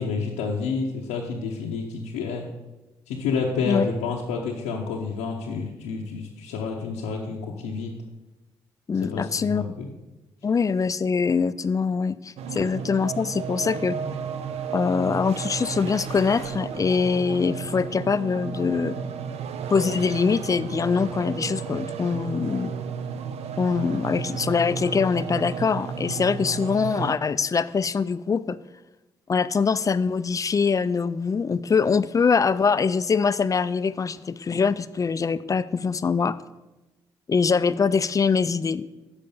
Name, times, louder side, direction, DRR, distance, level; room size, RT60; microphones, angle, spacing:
voice 1, 0.0-2.5 3.1-7.9 9.0-9.9, left 5 dB, 90° left, -2 dB, 0.7 m, -29 dB
voice 2, 8.9-9.6 10.4-14.0 14.7-18.9 19.7-22.7 23.6-28.6 29.3-36.4 37.3-38.9, left 5 dB, 30° left, 16 dB, 0.4 m, -23 dB
sound 1, 12.4-27.1, right 6 dB, 70° right, 0.5 m, -33 dB
6.6 x 4.9 x 6.9 m, 1.1 s
supercardioid pair, 50°, 11 cm